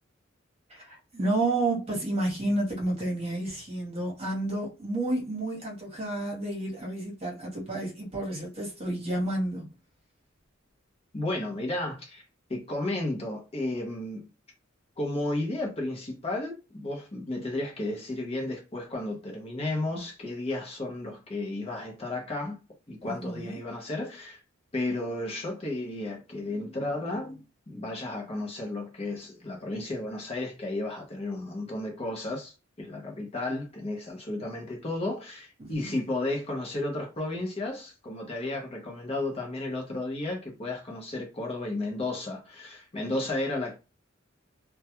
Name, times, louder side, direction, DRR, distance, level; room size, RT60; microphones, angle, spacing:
voice 1, 0.7-9.7 23.0-23.6 35.6-35.9, right 2 dB, 30° right, 1.0 m, -30 dB
voice 2, 11.1-12.2 12.5-14.2 15.0-22.6 22.9-24.4 24.7-43.7, left 2 dB, 30° left, 0.7 m, -33 dB
2.3 x 2.2 x 2.8 m
head